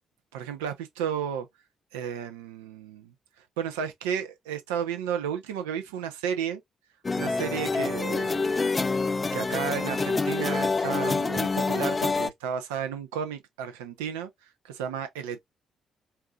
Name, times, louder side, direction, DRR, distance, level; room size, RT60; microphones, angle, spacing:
voice 1, 0.3-1.5 1.9-3.1 3.6-6.6 7.2-8.7 9.3-14.3 14.6-15.4, right 8 dB, 75° right, 0.8 m, -33 dB
sound 1, 7.0-12.3, left 4 dB, 30° left, 0.4 m, -27 dB
4.6 x 2.8 x 2.3 m
figure-of-eight pair, 40°, 0 cm